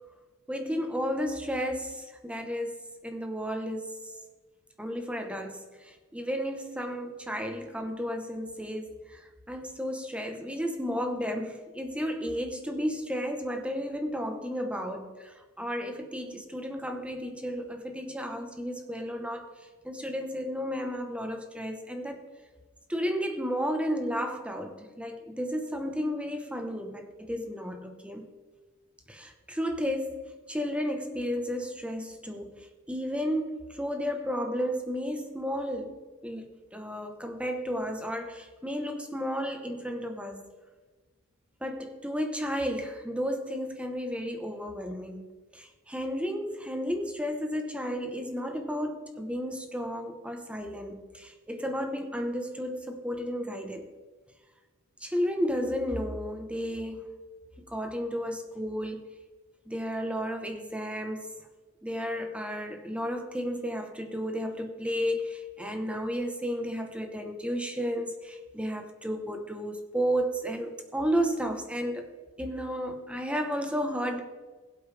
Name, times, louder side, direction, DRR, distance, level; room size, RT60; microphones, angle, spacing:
voice 1, 0.5-2.8 3.0-3.9 4.8-19.5 19.8-22.2 22.9-28.3 29.1-36.0 36.2-40.5 41.6-45.2 45.5-53.9 55.0-57.1 57.7-59.0 59.7-61.3 61.8-72.0 72.4-74.2, equal, 5° right, 5 dB, 1.0 m, -33 dB
20.5 x 8.4 x 3.4 m, 1.4 s
head